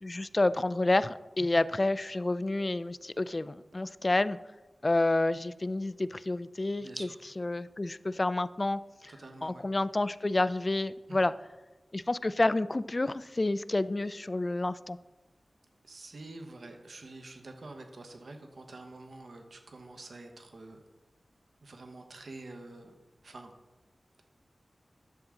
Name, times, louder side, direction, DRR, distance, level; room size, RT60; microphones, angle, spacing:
voice 1, 0.0-4.4 4.8-7.1 7.4-9.1 9.4-11.3 11.9-15.0, left 2 dB, 35° left, 15 dB, 0.3 m, -29 dB
voice 2, 6.8-7.2 9.1-9.6 11.1-11.2 15.8-20.8 21.6-23.0 23.2-23.5, right 2 dB, 75° right, 4 dB, 1.1 m, -47 dB
10.5 x 7.4 x 3.8 m, 1.1 s
wide cardioid pair, 65°, 0 cm